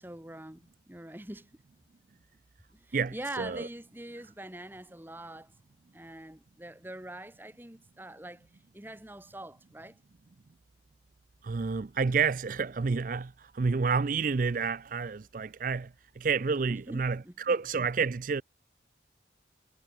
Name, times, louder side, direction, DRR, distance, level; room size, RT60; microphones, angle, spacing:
voice 1, 0.0-1.5 2.7-5.5 5.9-8.5 8.7-10.0 16.7-17.5, right 1 dB, 10° right, 1.2 m, -44 dB
voice 2, 2.9-3.7 11.4-15.9 16.2-18.4, right 5 dB, 45° right, 0.4 m, -29 dB
head